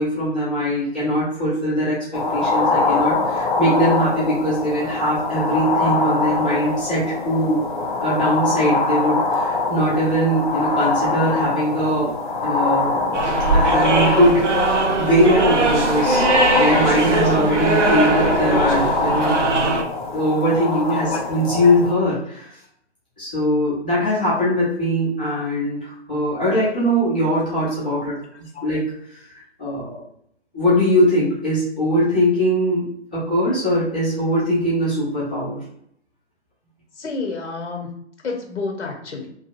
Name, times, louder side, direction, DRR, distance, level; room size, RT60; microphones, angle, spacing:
voice 1, 0.0-7.6 8.0-12.1 12.4-13.1 13.5-19.7 20.1-22.5 23.2-28.1 28.6-29.2 29.6-30.0 30.5-35.6, equal, 10° left, -11 dB, 0.3 m, -21 dB
sound 1, 2.1-21.9, left 3 dB, 45° left, 0.6 m, -23 dB
sound 2, 13.1-19.8, right 2 dB, 90° right, 0.6 m, -20 dB
voice 2, 19.1-19.9 20.9-21.2 21.6-21.7 28.5-28.6 37.0-37.9 38.2-39.3, left 3 dB, 80° left, 2 dB, 0.7 m, -31 dB
2.6 x 2.4 x 2.5 m, 0.70 s
figure-of-eight pair, 135°, 35 cm